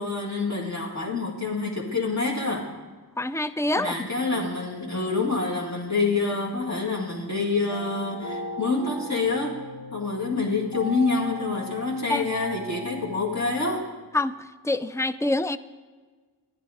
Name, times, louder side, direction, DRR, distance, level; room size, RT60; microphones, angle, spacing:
voice 1, 0.0-2.7 3.8-9.6 9.9-13.9, left 3 dB, 45° left, -3 dB, 1.9 m, -27 dB
voice 2, 3.2-3.9 12.1-12.3 14.1-14.4 14.6-15.6, left 2 dB, 10° left, 14 dB, 0.3 m, -25 dB
sound 1, 4.2-13.7, right 1 dB, 70° left, 2.6 m, -39 dB
11.0 x 10.5 x 4.9 m, 1.4 s
wide cardioid pair, 65°, 40 cm